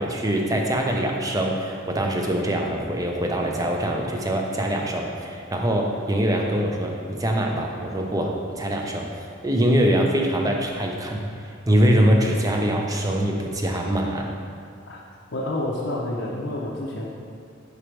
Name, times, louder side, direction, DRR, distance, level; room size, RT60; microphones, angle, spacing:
voice 1, 0.0-9.1 9.4-11.3 11.7-14.3, right 1 dB, 15° right, 1 dB, 0.5 m, -23 dB
voice 2, 15.3-17.1, left 1 dB, 60° left, -5 dB, 0.7 m, -29 dB
5.1 x 4.9 x 4.5 m, 2.4 s
head